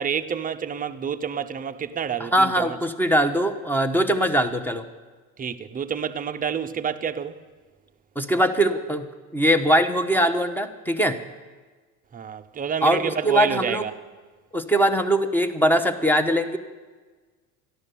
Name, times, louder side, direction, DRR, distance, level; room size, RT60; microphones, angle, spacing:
voice 1, 0.0-2.8 5.4-7.4 12.1-13.9, right 7 dB, 20° right, 0.6 m, -28 dB
voice 2, 2.2-4.9 8.2-9.1 9.3-11.2 12.8-13.9 14.5-16.6, right 1 dB, 5° left, 0.9 m, -21 dB
13.5 x 11.5 x 6.8 m
supercardioid pair, 105°, 41 cm